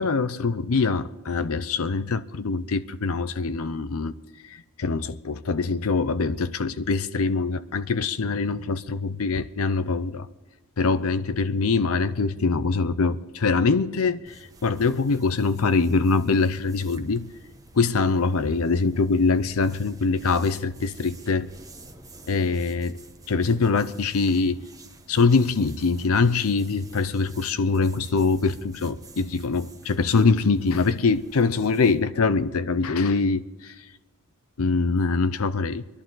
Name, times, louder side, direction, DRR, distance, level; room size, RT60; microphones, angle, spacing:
voice 1, 0.0-4.1 4.4-10.3 10.8-17.3 17.7-21.5 22.3-22.9 23.3-24.6 25.1-33.9 34.6-35.8, left 4 dB, 70° left, 0.6 m, -23 dB
sound 1, 14.3-32.1, right 2 dB, 15° right, 1.2 m, -49 dB
24.0 x 11.5 x 3.9 m
head